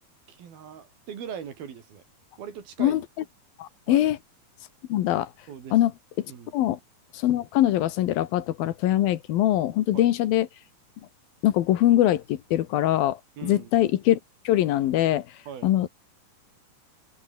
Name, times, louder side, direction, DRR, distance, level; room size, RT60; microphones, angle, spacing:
voice 1, 0.3-2.0 2.4-3.0 3.9-4.1 5.5-5.8 6.3-6.5 9.9-10.1 13.4-13.7 15.5-15.7, right 8 dB, 70° right, 4.8 m, -40 dB
voice 2, 3.6-4.2 4.9-5.3 5.7-5.9 6.2-6.3 6.5-6.8 7.1-10.5 11.4-14.2 14.4-15.3 15.6-15.9, left 13 dB, 70° left, 3.0 m, -22 dB
omnidirectional pair, 4.4 m